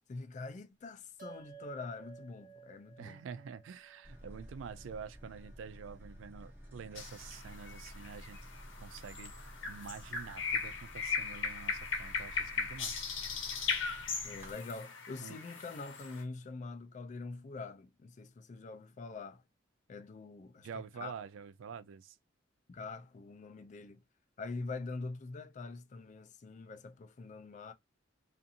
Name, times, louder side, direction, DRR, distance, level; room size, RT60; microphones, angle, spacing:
voice 1, 0.1-3.2 14.2-19.4 19.9-20.7 21.0-21.1 22.7-24.0 24.4-27.7, left 3 dB, 40° left, 0.4 m, -44 dB
sound 1, 1.2-5.9, right 7 dB, 50° right, 1.3 m, -56 dB
voice 2, 3.0-8.4 8.8-9.3 9.7-13.0 15.2-15.4 20.6-22.2, right 6 dB, 85° right, 0.3 m, -47 dB
sound 2, 4.0-14.5, equal, 10° right, 1.1 m, -52 dB
sound 3, 7.0-16.2, left 5 dB, 80° left, 0.8 m, -38 dB
2.5 x 2.5 x 2.6 m
head